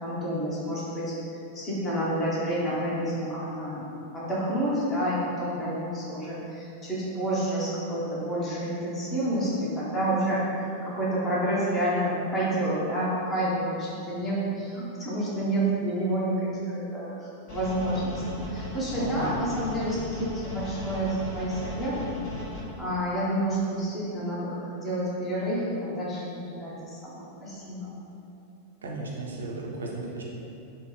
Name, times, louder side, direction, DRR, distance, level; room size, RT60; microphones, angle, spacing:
voice 1, 0.0-1.1 1.5-3.9 4.1-22.2 22.8-27.9, right 1 dB, 20° left, -7 dB, 0.8 m, -29 dB
sound 1, 17.5-22.6, left 2 dB, 45° left, 1.1 m, -37 dB
voice 2, 19.0-19.3 28.8-30.2, right 2 dB, 70° right, -2 dB, 0.4 m, -35 dB
3.3 x 2.1 x 3.0 m, 2.8 s
figure-of-eight pair, 90°, 0 cm